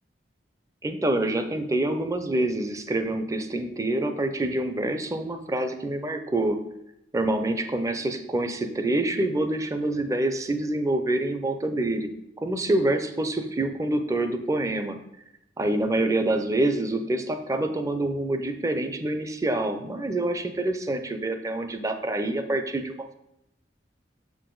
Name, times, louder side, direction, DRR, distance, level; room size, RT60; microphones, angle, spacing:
voice 1, 0.8-6.6 7.1-12.1 12.4-15.0 15.6-23.2, right 1 dB, 20° right, 7 dB, 0.5 m, -26 dB
6.8 x 4.8 x 3.8 m, 0.82 s
head